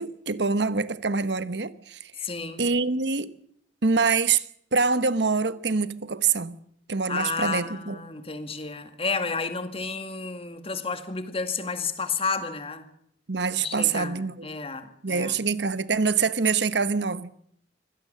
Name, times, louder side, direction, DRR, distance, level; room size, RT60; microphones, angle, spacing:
voice 1, 0.0-2.0 2.6-3.3 3.8-4.4 4.7-6.6 6.9-8.0 13.3-14.5 15.0-17.3, right 4 dB, 70° right, 1.1 m, -25 dB
voice 2, 2.2-2.7 7.1-12.9 13.6-15.4, left 4 dB, 30° left, 1.9 m, -31 dB
24.5 x 16.5 x 7.6 m
head